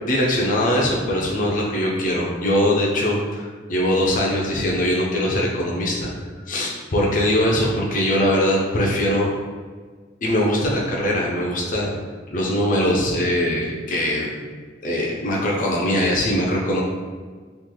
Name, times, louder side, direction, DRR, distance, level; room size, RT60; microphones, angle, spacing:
voice 1, 0.0-6.1 6.5-9.3 10.2-11.9 12.3-14.5 14.8-16.8, left 1 dB, 45° left, -3 dB, 0.5 m, -21 dB
3.1 x 2.4 x 3.7 m, 1.5 s
head